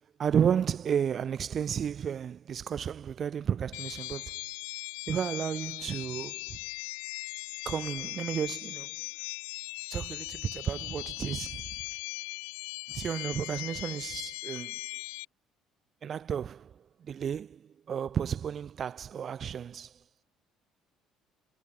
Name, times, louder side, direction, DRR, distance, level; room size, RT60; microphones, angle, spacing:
voice 1, 0.2-4.3 5.1-6.6 7.6-8.9 9.9-11.6 12.9-14.8 16.0-16.7 17.0-17.6 17.9-19.9, right 8 dB, 45° right, 3.3 m, -32 dB
sound 1, 3.7-15.3, left 37 dB, 70° left, 3.2 m, -39 dB
figure-of-eight pair, 50°, 0 cm